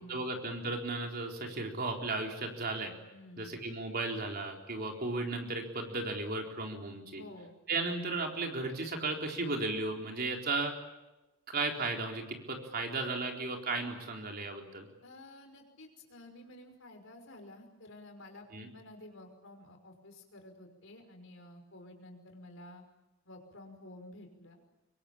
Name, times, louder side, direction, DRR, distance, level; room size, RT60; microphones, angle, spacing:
voice 1, 0.1-2.9 3.4-7.2 7.7-10.7 11.5-14.9 18.5-18.7, right 3 dB, 45° right, 2 dB, 4.1 m, -35 dB
voice 2, 3.1-3.5 7.2-7.6 15.0-22.8 23.3-24.6, left 1 dB, 60° left, 4 dB, 5.6 m, -52 dB
25.5 x 23.5 x 8.8 m, 1.0 s
head